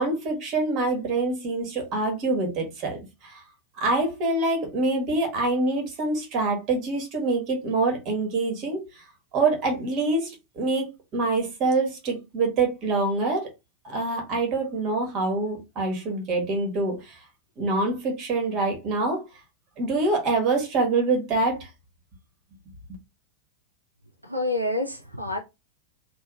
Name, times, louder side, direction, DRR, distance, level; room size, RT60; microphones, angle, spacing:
voice 1, 0.0-3.4 3.8-8.8 9.3-13.5 13.8-17.2 17.6-19.2 19.8-21.7, right 3 dB, 35° right, 1.5 m, -25 dB
voice 2, 24.2-25.4, left 2 dB, 85° right, 0.6 m, -28 dB
3.5 x 2.5 x 3.5 m
figure-of-eight pair, 90°, 0 cm